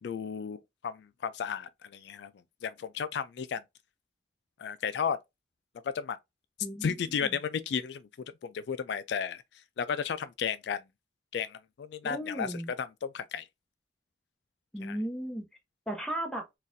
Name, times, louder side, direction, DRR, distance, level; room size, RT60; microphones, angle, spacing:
voice 1, 0.0-2.3 2.6-3.6 4.6-5.2 5.9-6.2 6.8-8.1 8.4-9.4 9.8-10.8 11.3-13.5 14.8-15.0, left 7 dB, 75° left, 0.3 m, -33 dB
voice 2, 6.6-7.4 12.0-12.7 14.7-15.4 15.9-16.5, right 1 dB, 5° left, 0.9 m, -36 dB
3.9 x 2.4 x 2.6 m
head